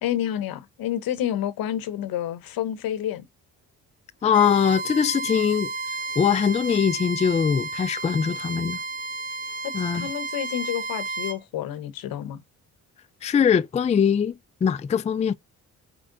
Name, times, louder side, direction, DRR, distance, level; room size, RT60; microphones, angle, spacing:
voice 1, 0.0-3.3 9.6-12.4, left 11 dB, 75° left, 0.8 m, -29 dB
voice 2, 4.2-5.7 6.2-8.8 9.7-10.1 13.2-14.4 14.6-15.3, left 7 dB, 20° left, 0.3 m, -22 dB
Bowed string instrument, 4.3-11.4, right 3 dB, 25° right, 0.6 m, -32 dB
5.0 x 3.3 x 2.5 m
supercardioid pair, 55°, 35 cm